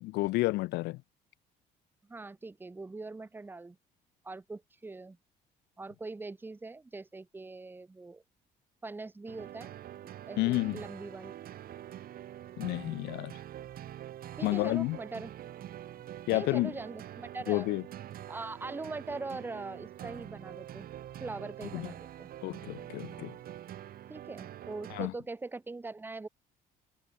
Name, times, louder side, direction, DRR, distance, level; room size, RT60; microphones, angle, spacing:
voice 1, 0.0-1.0 10.4-10.8 12.6-13.3 14.4-15.0 16.3-16.7 17.5-17.8 21.7-21.9 22.4-23.4 24.9-25.1, left 21 dB, 80° left, 0.4 m, -30 dB
voice 2, 2.1-3.8 4.2-5.2 5.8-8.2 8.8-9.7 10.0-11.4 14.4-15.3 16.3-17.7 18.3-20.9 21.2-22.3 24.1-26.3, right 3 dB, 10° right, 0.7 m, -42 dB
sound 1, 9.3-25.1, right 12 dB, 60° right, 2.1 m, -45 dB
cardioid pair, 110°, 17 cm